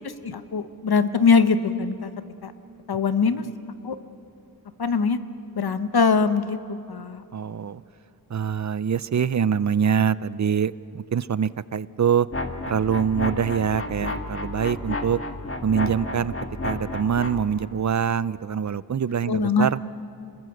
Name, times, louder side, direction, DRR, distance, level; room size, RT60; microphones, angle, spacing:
voice 1, 0.0-2.1 2.4-2.5 2.9-3.5 3.8-4.0 4.8-5.2 5.5-7.2 19.3-19.7, left 5 dB, 80° left, 11 dB, 1.1 m, -22 dB
voice 2, 7.3-7.8 8.3-12.3 12.7-15.2 15.6-16.3 16.6-19.8, right 7 dB, 50° right, 18 dB, 0.5 m, -24 dB
sound 1, 12.3-17.4, left 2 dB, 35° left, 1.9 m, -32 dB
27.0 x 20.5 x 7.8 m, 2.6 s
wide cardioid pair, 90°, 37 cm